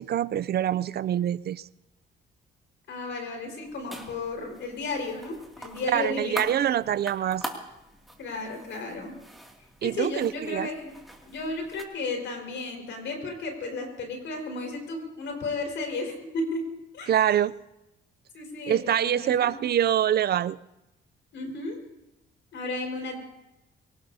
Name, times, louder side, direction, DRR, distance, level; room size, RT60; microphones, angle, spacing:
voice 1, 0.0-1.7 5.8-7.5 9.8-10.7 17.1-17.5 18.7-20.6, right 10 dB, 55° right, 18 dB, 0.5 m, -25 dB
voice 2, 2.9-6.6 8.2-9.2 9.8-10.9 11.2-17.1 18.3-19.6 21.3-21.8 22.5-23.2, left 3 dB, 70° left, 3 dB, 4.8 m, -34 dB
sound 1, 3.6-11.8, right 1 dB, ahead, 2.4 m, -43 dB
24.5 x 18.0 x 2.8 m, 0.93 s
cardioid pair, 90°, 20 cm